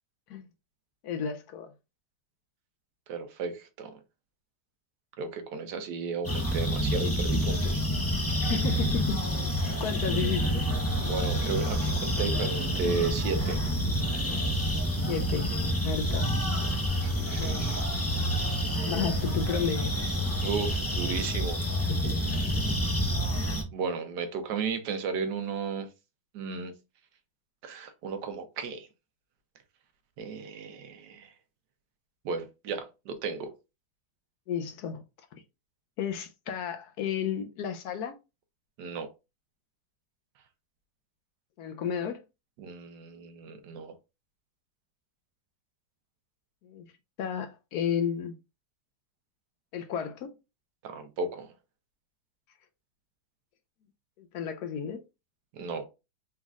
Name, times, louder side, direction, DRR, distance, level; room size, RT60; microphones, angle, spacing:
voice 1, 1.0-1.7 8.4-9.2 9.6-10.6 15.0-15.5 15.8-16.3 17.4-17.7 18.8-19.9 22.4-22.8 34.5-35.0 36.0-38.1 41.6-42.2 46.6-46.9 47.2-48.3 49.7-50.3 54.2-55.0, left 7 dB, 70° left, 1.0 m, -32 dB
voice 2, 3.1-3.9 5.2-7.8 10.9-13.6 17.0-17.8 20.4-21.6 23.7-25.9 26.3-26.7 27.6-28.9 30.2-31.3 32.2-33.5 38.8-39.1 42.6-43.9 50.8-51.5 55.5-55.8, right 5 dB, 75° right, 1.3 m, -34 dB
sound 1, 6.2-23.6, equal, 15° left, 0.6 m, -28 dB
4.1 x 3.7 x 2.3 m
omnidirectional pair, 1.9 m